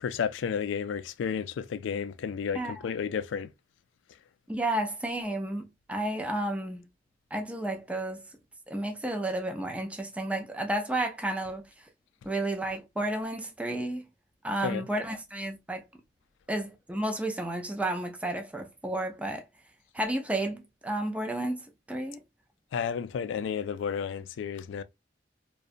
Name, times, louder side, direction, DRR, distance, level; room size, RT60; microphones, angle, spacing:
voice 1, 0.0-3.5 14.6-14.9 22.7-24.8, left 7 dB, 80° left, 0.3 m, -32 dB
voice 2, 4.5-6.8 7.3-8.2 8.7-11.7 12.2-14.0 14.4-15.8 16.5-19.4 19.9-22.2, right 1 dB, 5° right, 0.4 m, -32 dB
2.7 x 2.2 x 2.4 m
head